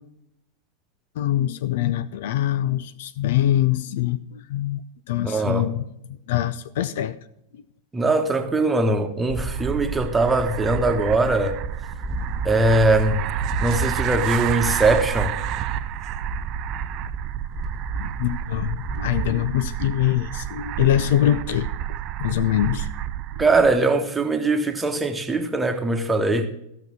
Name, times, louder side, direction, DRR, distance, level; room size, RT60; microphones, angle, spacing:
voice 1, 1.2-4.8 5.1-5.8 6.3-7.2 17.9-21.7 22.2-22.9, left 12 dB, 55° left, 0.5 m, -23 dB
voice 2, 5.2-5.7 7.9-11.6 12.4-13.2 13.6-15.4 23.4-26.5, right 2 dB, 10° right, 1.3 m, -21 dB
sound 1, 9.3-19.9, equal, 10° left, 2.1 m, -35 dB
sound 2, 9.3-23.8, right 12 dB, 40° right, 0.5 m, -30 dB
14.0 x 6.4 x 6.0 m
figure-of-eight pair, 90°, 0 cm